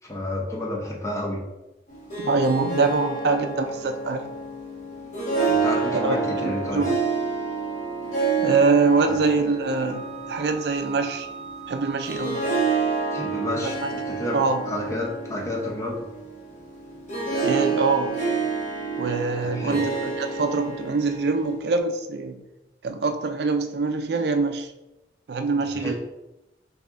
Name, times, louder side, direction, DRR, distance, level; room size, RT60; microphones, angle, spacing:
voice 1, 0.0-1.4 5.5-6.8 9.0-9.1 13.1-16.0 19.4-19.8 25.7-25.9, left 1 dB, 15° left, -2 dB, 0.8 m, -30 dB
Harp, 1.9-21.7, right 4 dB, 40° left, 1.5 m, -29 dB
voice 2, 2.2-4.3 5.9-7.0 8.4-11.3 11.7-12.5 13.6-13.7 14.3-14.6 17.4-18.2 19.0-22.4 22.8-24.7 25.3-25.9, right 4 dB, 65° right, 7 dB, 0.4 m, -24 dB
Wind instrument woodwind instrument, 9.9-13.5, right 4 dB, 90° left, 1.0 m, -40 dB
6.4 x 2.7 x 2.5 m, 0.95 s
head